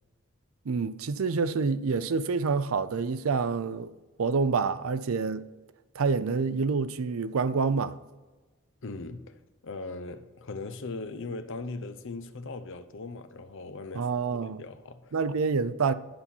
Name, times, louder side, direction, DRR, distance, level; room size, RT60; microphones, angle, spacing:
voice 1, 0.7-3.9 4.2-5.4 6.0-7.9 13.9-14.6 15.1-15.9, right 4 dB, 85° right, 0.5 m, -27 dB
voice 2, 8.8-14.1 14.4-15.1, left 3 dB, 65° left, 0.7 m, -39 dB
10.5 x 5.5 x 4.4 m
head